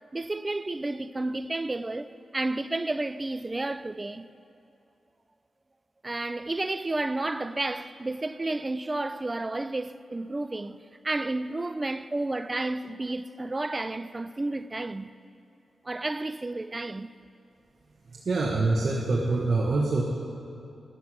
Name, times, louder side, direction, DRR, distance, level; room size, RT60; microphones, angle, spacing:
voice 1, 0.1-4.3 6.0-15.1 15.8-17.1, right 2 dB, 30° right, 0.4 m, -31 dB
voice 2, 18.1-20.0, right 3 dB, 60° right, 1.1 m, -25 dB
11.5 x 7.8 x 6.0 m
cardioid pair, 50°, 0 cm